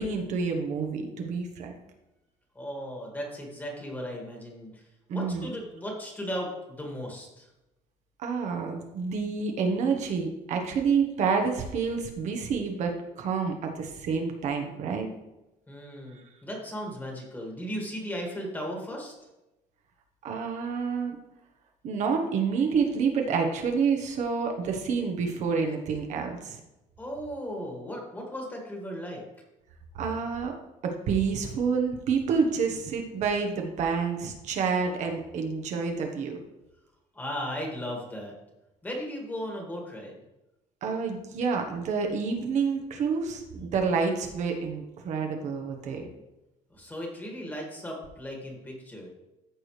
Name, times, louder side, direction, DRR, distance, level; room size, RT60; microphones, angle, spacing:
voice 1, 0.0-1.7 5.1-5.5 8.2-15.1 16.1-16.2 20.2-21.2 21.8-26.6 29.9-30.5 30.8-36.4 40.8-46.1, right 5 dB, 55° right, 3 dB, 1.2 m, -28 dB
voice 2, 2.6-4.8 5.1-7.5 15.7-19.1 27.0-29.2 37.1-38.3 38.8-40.2 46.7-49.1, equal, 15° left, -1 dB, 2.0 m, -36 dB
14.0 x 4.9 x 3.3 m, 0.97 s
cardioid pair, 145°, 14 cm